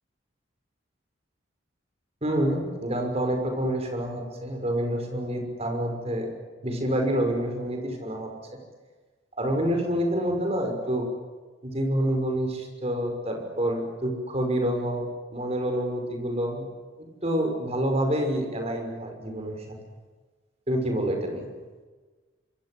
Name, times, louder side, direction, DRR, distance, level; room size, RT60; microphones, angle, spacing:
voice 1, 2.2-6.3 6.6-8.3 9.4-11.1 11.6-16.7 17.0-19.7 20.7-21.5, right 1 dB, 35° right, 3 dB, 6.0 m, -27 dB
26.5 x 23.5 x 7.9 m, 1.3 s
head